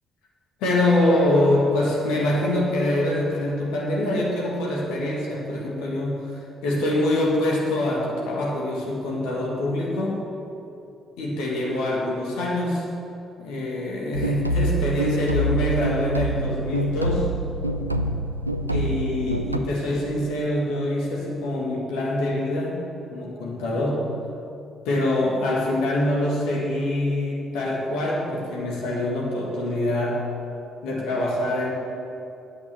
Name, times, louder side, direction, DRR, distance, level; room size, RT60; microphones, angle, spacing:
voice 1, 0.6-10.2 11.2-12.9 13.4-17.3 18.7-22.8 23.1-24.1 24.9-30.2 30.8-31.7, left 1 dB, 65° left, -3 dB, 1.9 m, -24 dB
sound 1, 14.1-19.6, right 1 dB, 90° right, 0.3 m, -26 dB
9.9 x 8.9 x 6.9 m, 2.8 s
figure-of-eight pair, 45°, 0 cm